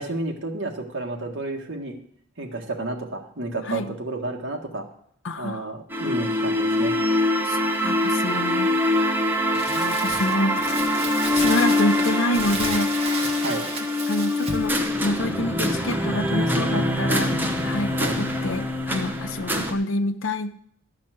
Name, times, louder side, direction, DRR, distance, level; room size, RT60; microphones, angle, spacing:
voice 1, 0.0-2.0 2.4-4.8 5.4-7.0 13.4-13.7 17.9-18.2, right 2 dB, 65° right, 1 dB, 1.7 m, -31 dB
voice 2, 5.2-5.7 7.5-8.7 9.0-9.2 9.7-10.7 11.3-12.9 14.1-14.8 15.0-17.3 17.6-20.6, left 1 dB, 65° left, 10 dB, 0.7 m, -27 dB
sound 1, 5.9-19.7, left 1 dB, 10° right, 0.9 m, -24 dB
Crumpling crinkling, 9.5-14.7, right 3 dB, 30° right, 1.6 m, -33 dB
12.0 x 5.9 x 7.6 m, 0.65 s
head